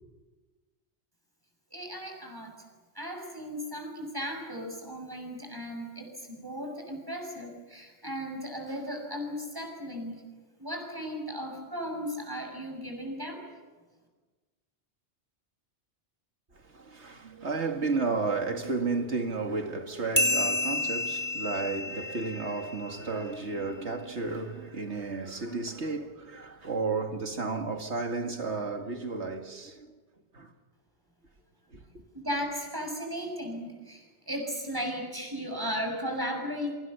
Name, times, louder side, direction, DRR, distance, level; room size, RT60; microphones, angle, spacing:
voice 1, 1.7-2.5 2.9-10.2 10.6-13.4 32.1-36.7, equal, 20° right, 6.8 m, -36 dB
voice 2, 16.5-29.9 30.3-30.5 31.7-32.0, right 4 dB, 85° right, 2.5 m, -32 dB
sound 1, 20.2-23.2, left 2 dB, 15° left, 2.9 m, -30 dB
28.5 x 25.0 x 7.0 m
omnidirectional pair, 1.1 m